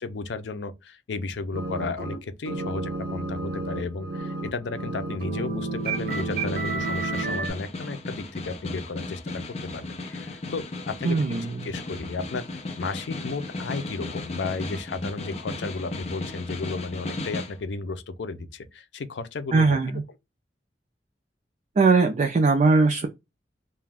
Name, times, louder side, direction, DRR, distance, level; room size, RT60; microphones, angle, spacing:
voice 1, 0.0-9.4 9.7-11.2 11.6-12.4 12.8-19.8, left 4 dB, 85° left, 0.5 m, -33 dB
sound 1, 1.5-2.2 2.4-7.5, right 3 dB, 60° right, 1.0 m, -30 dB
Snare drum, 5.8-17.6, left 2 dB, 40° left, 0.5 m, -36 dB
voice 2, 11.0-11.6 19.5-20.0 21.8-23.1, right 4 dB, 45° right, 0.4 m, -20 dB
2.4 x 2.2 x 3.3 m
head